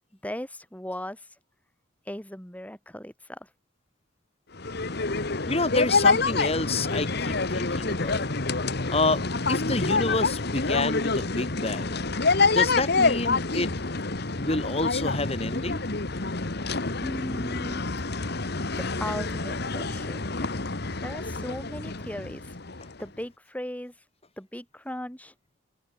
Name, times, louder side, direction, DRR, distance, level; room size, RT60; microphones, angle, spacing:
voice 1, 0.2-1.3 2.1-3.5 17.0-17.9 18.8-20.3 21.0-22.5 23.0-23.9 24.4-25.3, left 1 dB, 5° left, 5.6 m, -37 dB
sound 1, 4.5-23.0, left 3 dB, 55° left, 1.6 m, -27 dB
voice 2, 5.5-8.3 8.9-12.0 12.5-13.7 14.4-15.9, left 2 dB, 30° left, 4.9 m, -28 dB
open air
head